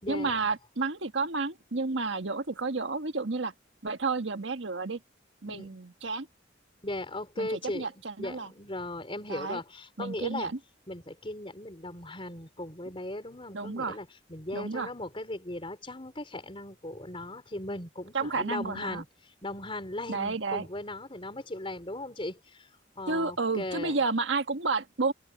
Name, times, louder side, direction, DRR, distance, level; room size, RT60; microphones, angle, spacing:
voice 1, 0.1-3.5 3.8-5.0 5.4-6.3 7.4-8.5 9.3-9.6 10.0-10.6 13.5-14.0 14.5-14.9 18.1-19.0 20.1-20.7 23.1-25.1, right 3 dB, 75° right, 1.5 m, -31 dB
voice 2, 6.8-7.9 8.2-10.5 10.9-22.7 23.0-24.0, left 1 dB, 30° left, 4.5 m, -38 dB
head